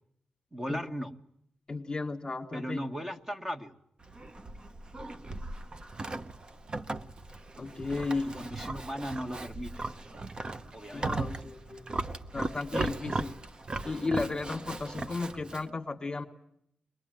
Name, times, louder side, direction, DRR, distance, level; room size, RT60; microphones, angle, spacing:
voice 1, 0.5-1.1 2.5-3.7 8.3-9.7 10.7-11.1, equal, 15° right, 5 dB, 1.6 m, -37 dB
voice 2, 1.7-2.8 7.6-8.4 10.9-13.4 13.8-16.3, left 3 dB, 30° left, 4 dB, 1.6 m, -34 dB
Livestock farm animals working animals, 4.0-15.7, right 2 dB, 30° right, 0.9 m, -37 dB
23.0 x 20.0 x 9.1 m, 0.74 s
wide cardioid pair, 110°, 3 cm